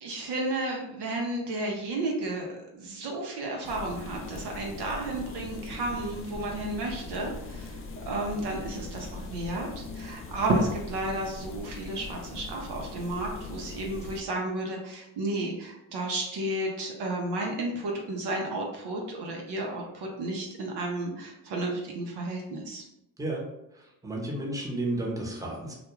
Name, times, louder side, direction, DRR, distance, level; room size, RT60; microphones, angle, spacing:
voice 1, 0.0-22.8, right 2 dB, 60° right, 0 dB, 0.7 m, -32 dB
sound 1, 3.6-14.2, left 3 dB, 30° left, 0.4 m, -41 dB
voice 2, 24.0-25.7, right 1 dB, 5° right, -4 dB, 0.9 m, -32 dB
2.3 x 2.2 x 3.0 m, 0.87 s
hypercardioid pair, 45°, 45 cm